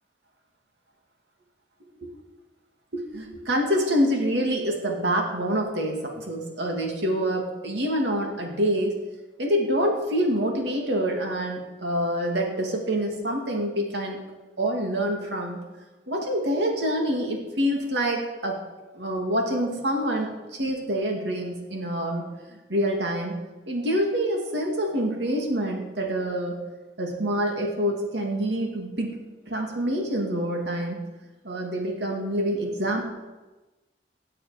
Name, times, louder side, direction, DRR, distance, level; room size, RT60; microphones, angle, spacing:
voice 1, 2.9-9.0 9.4-14.2 14.6-15.6 16.1-18.6 18.9-23.4 23.7-26.6 27.0-29.2 29.5-31.0 31.4-33.0, equal, 85° right, 1 dB, 2.5 m, -26 dB
17.0 x 8.6 x 5.1 m, 1.1 s
head